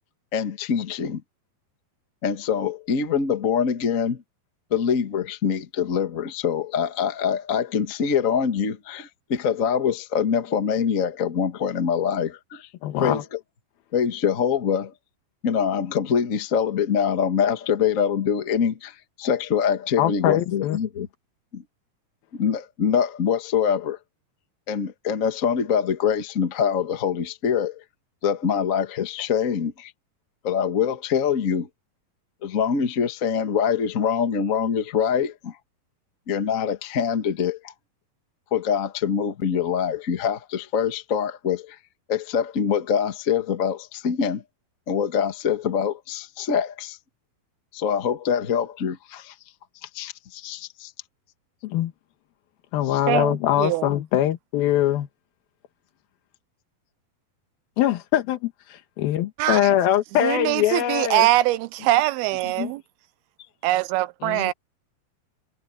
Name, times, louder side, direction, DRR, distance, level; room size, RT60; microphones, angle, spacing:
voice 1, 0.3-1.2 2.2-4.2 4.7-12.7 13.0-13.4 13.9-14.9 15.4-21.1 21.5-21.6 22.3-24.0 24.7-27.8 28.2-29.9 30.4-31.7 32.4-35.6 36.3-37.7 38.5-41.8 42.1-44.4 44.9-47.0 47.7-49.3 49.8-50.9 52.9-53.0 62.6-62.7, left 7 dB, 60° left, 0.8 m, -24 dB
voice 2, 12.8-13.2 20.0-20.8 51.6-51.9 52.7-55.1 57.8-61.3 64.2-64.5, left 12 dB, 75° left, 3.0 m, -23 dB
voice 3, 53.1-53.9 59.4-59.6 60.1-62.8 63.6-64.5, right 16 dB, 90° right, 2.6 m, -23 dB
omnidirectional pair, 4.4 m